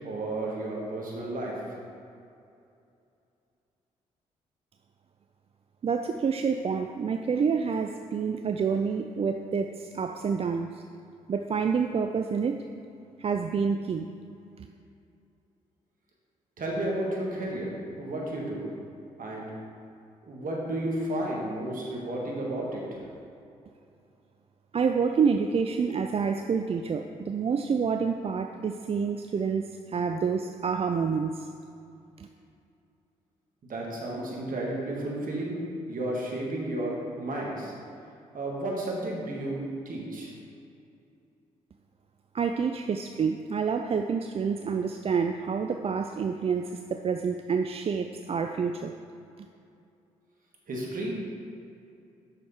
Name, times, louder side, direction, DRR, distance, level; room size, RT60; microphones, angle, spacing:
voice 1, 0.0-1.6 16.6-18.6 19.2-19.5 20.2-23.0 33.6-35.6 35.9-37.7 38.3-40.3 50.7-51.3, right 1 dB, 55° right, -2 dB, 1.8 m, -32 dB
voice 2, 5.8-10.8 11.3-12.6 13.2-14.1 14.6-14.7 24.7-31.5 32.2-32.3 42.3-49.0 49.4-49.5, right 6 dB, 35° right, 6 dB, 0.4 m, -28 dB
6.4 x 6.2 x 4.5 m, 2.6 s
hypercardioid pair, 45°, 17 cm